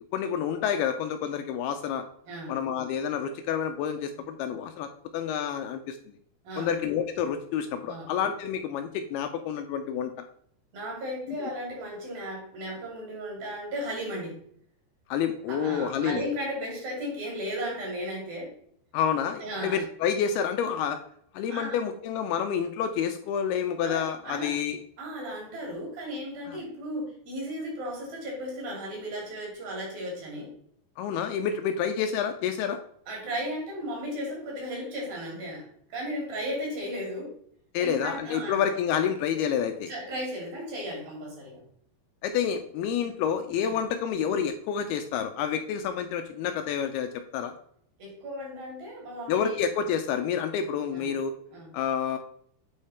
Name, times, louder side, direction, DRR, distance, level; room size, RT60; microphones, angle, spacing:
voice 1, 0.1-2.0 2.5-4.9 5.1-6.0 6.6-10.3 11.3-11.5 15.1-16.2 18.9-21.0 21.3-24.8 26.5-26.6 31.0-32.8 37.7-39.9 42.2-47.5 49.3-51.4 51.7-52.2, left 8 dB, 80° left, 7 dB, 2.3 m, -29 dB
voice 2, 2.3-2.6 6.4-6.7 7.8-8.1 10.7-14.4 15.5-18.5 19.4-19.8 21.5-21.8 23.8-24.6 25.0-30.5 33.1-37.3 37.8-38.7 39.9-41.6 43.6-43.7 48.0-49.6 50.9-51.1 51.5-51.7, equal, 55° right, -2 dB, 4.6 m, -35 dB
8.5 x 4.9 x 4.3 m, 0.64 s
omnidirectional pair, 5.0 m